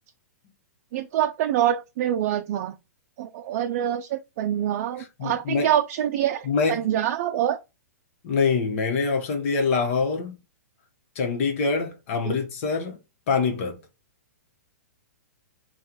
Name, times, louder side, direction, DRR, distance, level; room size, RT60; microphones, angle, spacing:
voice 1, 0.9-2.8 3.2-7.6 12.2-12.4, right 11 dB, 50° right, 0.4 m, -25 dB
voice 2, 5.2-5.7 6.4-6.8 8.2-10.3 11.1-12.9 13.3-13.8, left 4 dB, 55° left, 1.0 m, -24 dB
3.6 x 2.3 x 4.3 m
hypercardioid pair, 125°, 9 cm